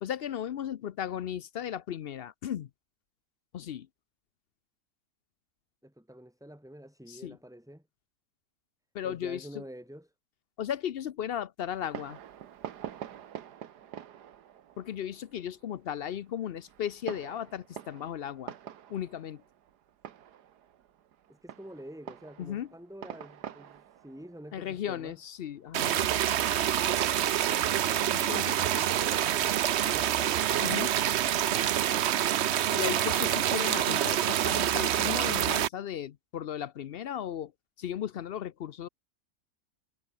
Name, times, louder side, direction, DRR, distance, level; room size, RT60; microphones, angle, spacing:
voice 1, 0.0-2.7 3.5-3.9 7.1-7.4 8.9-9.6 10.6-12.2 14.8-18.5 18.9-19.4 22.4-22.7 24.5-26.1 28.1-28.6 30.6-30.9 32.7-37.5 37.8-38.9, left 10 dB, 70° left, 0.5 m, -36 dB
voice 2, 5.8-7.8 9.0-10.1 21.3-25.2, equal, ahead, 2.1 m, -47 dB
Fireworks, 11.7-25.9, right 10 dB, 90° right, 1.7 m, -46 dB
sound 1, 25.7-35.7, right 11 dB, 60° right, 0.7 m, -27 dB
omnidirectional pair, 1.7 m